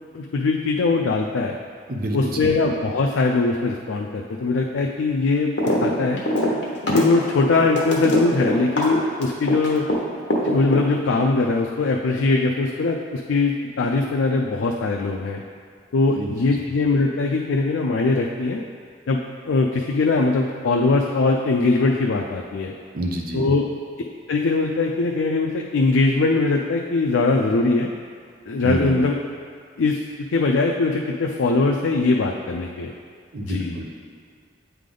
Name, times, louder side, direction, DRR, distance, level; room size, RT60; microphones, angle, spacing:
voice 1, 0.1-1.6 2.1-5.5 5.8-6.2 6.9-9.8 10.4-15.4 15.9-18.6 19.1-19.2 19.4-22.7 23.3-23.6 24.3-27.9 28.5-29.2 29.8-30.0 30.3-32.9 33.4-33.8, left 3 dB, 85° left, 0 dB, 0.4 m, -21 dB
voice 2, 1.9-2.6 16.1-16.6 22.9-23.4 28.6-29.0 33.3-33.9, right 1 dB, 50° right, 0 dB, 0.6 m, -28 dB
sound 1, 5.6-5.9 6.1-10.0 10.3-11.2, equal, 70° left, 1.1 m, -22 dB
8.3 x 3.4 x 3.8 m, 2.1 s
head